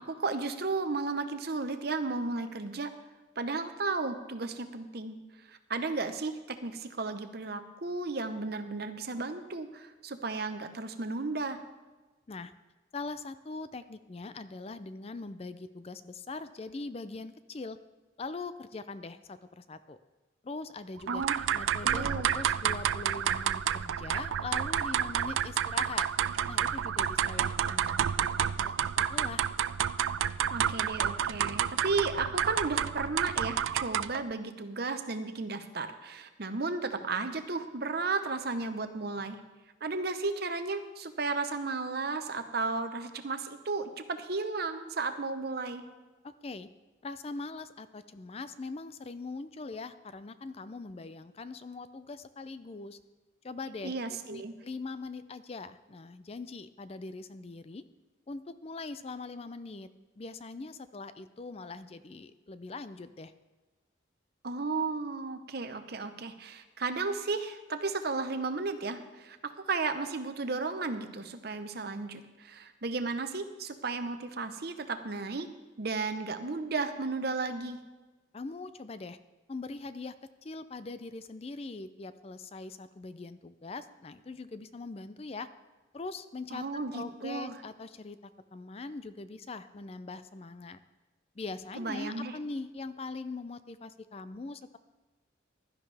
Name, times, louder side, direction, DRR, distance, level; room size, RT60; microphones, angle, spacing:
voice 1, 0.1-2.9 3.4-5.2 5.5-11.6 21.1-21.3 21.8-22.3 30.5-39.4 39.8-45.8 53.8-54.5 64.4-75.5 75.8-77.8 86.5-87.6 91.8-92.4, right 3 dB, 55° right, 9 dB, 0.9 m, -34 dB
voice 2, 12.9-17.8 18.2-20.0 20.4-26.1 26.5-29.4 46.2-46.7 47.0-53.0 53.4-57.8 58.3-59.9 60.2-63.3 78.3-79.2 79.5-85.5 85.9-86.6 86.9-90.8 91.4-94.8, left 3 dB, 30° left, 13 dB, 0.4 m, -42 dB
sound 1, 21.1-34.3, right 9 dB, 75° right, 0.3 m, -30 dB
15.5 x 12.0 x 3.4 m, 1.2 s
head